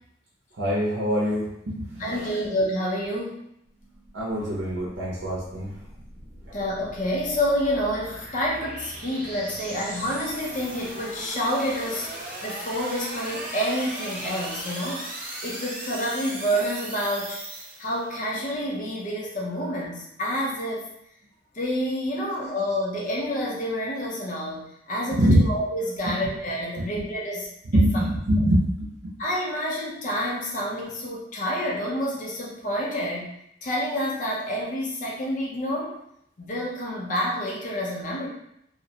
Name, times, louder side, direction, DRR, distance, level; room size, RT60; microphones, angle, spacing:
voice 1, 0.6-2.1 4.1-5.7 22.1-22.2 25.1-25.4 26.8-26.9 27.7-28.9, equal, 80° right, -5 dB, 0.6 m, -23 dB
voice 2, 2.0-3.4 6.5-12.1 12.4-15.0 15.4-17.4 17.8-20.8 21.5-27.8 29.2-33.3 33.6-35.9 36.4-38.3, equal, 45° left, -3 dB, 0.6 m, -28 dB
sound 1, 3.7-18.3, right 1 dB, 45° right, 0.8 m, -38 dB
2.5 x 2.1 x 2.7 m, 0.76 s
head